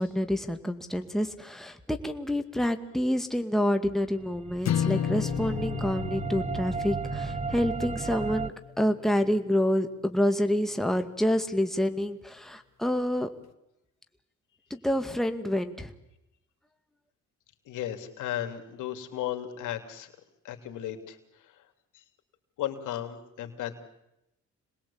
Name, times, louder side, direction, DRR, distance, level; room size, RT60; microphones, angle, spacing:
voice 1, 0.0-13.3 14.7-15.9, equal, ahead, 6 dB, 2.2 m, -28 dB
sound 1, 4.2-8.5, right 5 dB, 20° right, 1.1 m, -34 dB
sound 2, 4.6-9.0, left 8 dB, 60° left, 1.7 m, -33 dB
voice 2, 17.6-20.1 20.4-21.5 21.9-22.0 22.6-23.8, left 11 dB, 85° left, 7 dB, 3.2 m, -35 dB
27.5 x 20.5 x 8.7 m, 0.87 s
cardioid pair, 90°, 30 cm